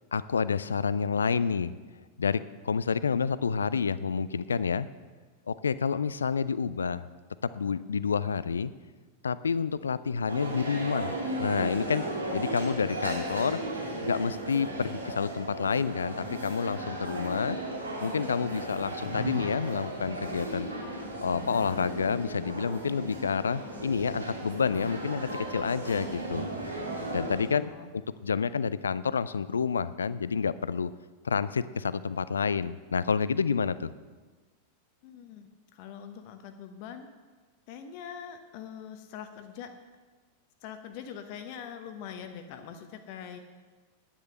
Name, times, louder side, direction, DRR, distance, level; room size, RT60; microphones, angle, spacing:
voice 1, 0.1-1.7 2.2-4.9 5.5-7.0 7.4-8.7 9.2-11.1 11.4-12.0 12.3-13.6 14.0-17.6 18.0-20.7 21.2-26.5 27.1-30.9 31.2-33.9, left 6 dB, 70° left, 16 dB, 0.4 m, -29 dB
sound 1, 10.3-27.5, right 1 dB, 80° right, 2.2 m, -36 dB
voice 2, 27.5-27.9 35.0-37.1 37.7-39.7 40.6-43.4, left 8 dB, 45° left, 7 dB, 1.0 m, -43 dB
10.0 x 10.0 x 6.5 m, 1.4 s
figure-of-eight pair, 90°, 0 cm